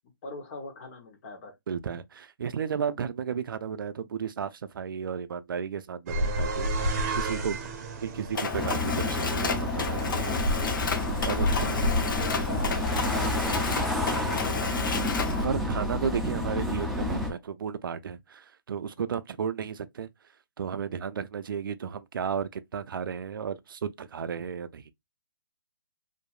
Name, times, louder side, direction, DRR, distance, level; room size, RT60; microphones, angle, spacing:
voice 1, 0.2-1.6 11.4-12.7 13.1-13.5 13.9-14.7, left 2 dB, 40° left, 1.0 m, -42 dB
voice 2, 1.7-7.6 8.0-10.5 11.2-11.8 15.4-20.1 20.6-24.8, right 7 dB, 75° right, 0.4 m, -33 dB
sound 1, 6.1-13.9, equal, 45° right, 0.7 m, -32 dB
Mechanisms, 8.3-15.4, left 5 dB, 70° left, 0.6 m, -32 dB
sound 2, 8.5-17.3, left 1 dB, ahead, 0.4 m, -30 dB
2.7 x 2.5 x 2.3 m
hypercardioid pair, 150°, 11 cm